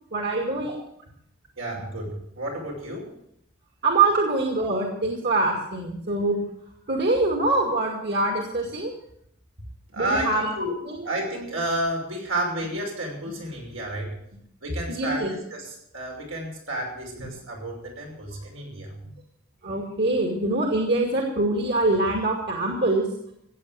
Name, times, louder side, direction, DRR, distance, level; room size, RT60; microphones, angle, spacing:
voice 1, 0.1-0.7 3.8-6.4 6.9-8.9 10.0-10.5 10.9-11.0 14.9-15.3 19.6-23.1, right 2 dB, 55° right, 1 dB, 2.3 m, -24 dB
voice 2, 1.6-3.1 9.9-10.8 11.0-14.1 14.6-19.0, right 1 dB, 90° right, 0 dB, 6.0 m, -31 dB
15.5 x 8.6 x 8.0 m, 0.73 s
head